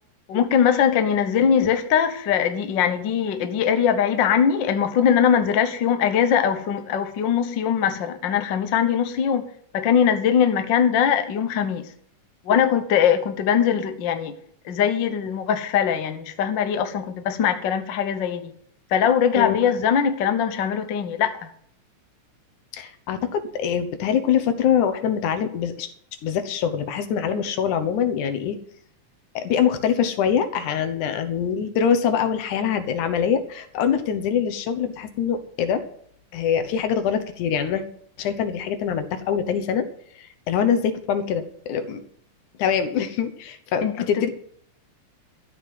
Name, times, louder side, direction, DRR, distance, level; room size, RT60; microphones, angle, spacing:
voice 1, 0.3-9.5 9.7-11.9 12.4-14.4 14.6-18.5 18.9-21.4 43.8-44.3, left 8 dB, 60° left, 1.2 m, -21 dB
voice 2, 22.7-25.9 26.2-28.6 29.4-35.8 36.3-37.8 38.2-39.9 40.2-42.0 42.6-44.3, left 8 dB, 75° left, 2.5 m, -24 dB
14.0 x 5.6 x 9.4 m
omnidirectional pair, 3.6 m